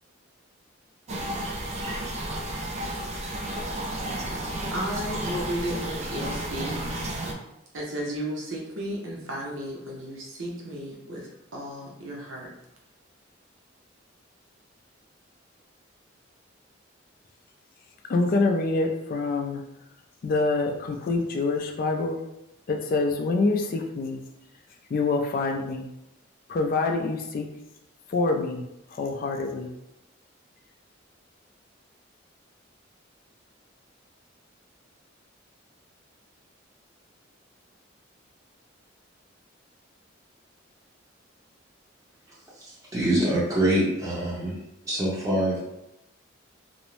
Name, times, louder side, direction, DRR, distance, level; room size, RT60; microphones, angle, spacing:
sound 1, 1.1-7.3, right 1 dB, 35° right, 0.3 m, -32 dB
voice 1, 4.7-6.8 7.7-12.5, equal, 85° right, -3 dB, 0.8 m, -34 dB
voice 2, 18.1-19.6 20.2-22.2 22.7-24.2 24.9-25.9 26.5-27.5 28.1-29.7, left 3 dB, 45° left, 3 dB, 0.3 m, -26 dB
voice 3, 42.6-44.6 44.8-45.6, right 1 dB, 15° right, -7 dB, 0.8 m, -25 dB
2.5 x 2.0 x 3.0 m, 0.85 s
head